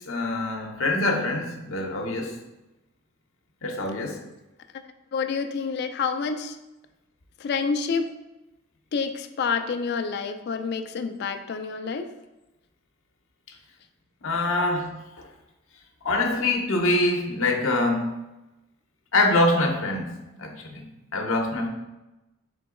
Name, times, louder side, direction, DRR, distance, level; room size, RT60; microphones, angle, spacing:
voice 1, 0.0-2.4 3.6-4.2 14.2-14.9 16.0-18.1 19.1-20.8 21.1-21.7, left 2 dB, 75° left, 2 dB, 0.7 m, -24 dB
voice 2, 5.1-6.6 7.4-8.1 8.9-12.1 14.6-14.7, left 5 dB, 50° left, 8 dB, 0.3 m, -28 dB
3.8 x 2.9 x 3.7 m, 0.99 s
head